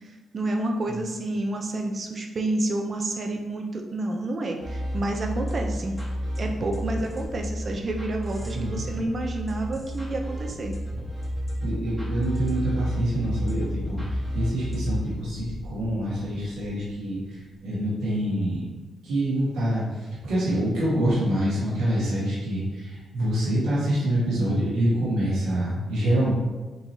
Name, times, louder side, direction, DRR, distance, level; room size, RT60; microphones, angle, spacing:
voice 1, 0.3-6.0 6.4-10.7, right 2 dB, 50° right, 3 dB, 0.6 m, -29 dB
sound 1, 4.6-15.2, equal, 5° right, 1.3 m, -31 dB
sound 2, 10.7-17.8, left 2 dB, 50° left, 0.4 m, -40 dB
voice 2, 11.6-18.6 19.0-26.3, right 1 dB, 85° right, -9 dB, 1.4 m, -26 dB
4.6 x 2.9 x 2.7 m, 1.2 s
cardioid pair, 75°, 0 cm